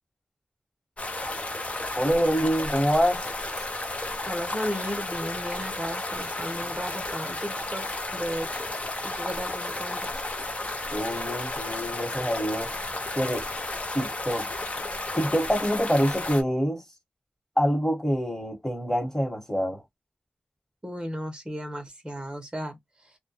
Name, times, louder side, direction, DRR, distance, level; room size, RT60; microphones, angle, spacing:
sound 1, 1.0-16.4, left 2 dB, 35° left, 0.7 m, -33 dB
voice 1, 2.0-3.2 10.9-12.7 13.2-13.4 13.9-14.5 15.2-16.8 17.6-19.8, equal, 10° left, 1.2 m, -25 dB
voice 2, 4.3-7.9 8.1-8.6 9.0-10.2 11.3-11.5 20.8-23.2, equal, 20° right, 0.7 m, -35 dB
2.2 x 2.2 x 2.8 m
cardioid pair, 55°, 4 cm